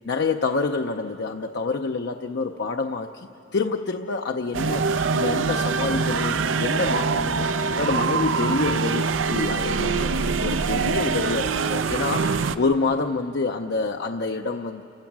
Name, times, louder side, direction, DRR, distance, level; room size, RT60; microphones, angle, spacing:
voice 1, 0.0-14.8, left 3 dB, 60° left, 4 dB, 0.6 m, -27 dB
sound 1, 4.5-12.6, right 4 dB, 85° right, 0.6 m, -24 dB
29.0 x 16.0 x 6.1 m, 2.9 s
head